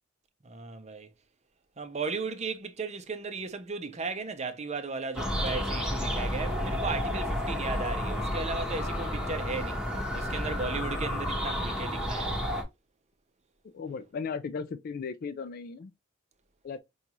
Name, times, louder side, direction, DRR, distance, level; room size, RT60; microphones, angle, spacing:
voice 1, 0.4-1.1 1.8-9.8 10.1-12.4, right 4 dB, 35° right, 0.7 m, -36 dB
sound 1, 5.2-12.6, equal, 5° right, 1.0 m, -31 dB
voice 2, 13.7-15.9 16.6-16.8, left 5 dB, 50° left, 0.4 m, -36 dB
5.2 x 2.3 x 2.9 m
head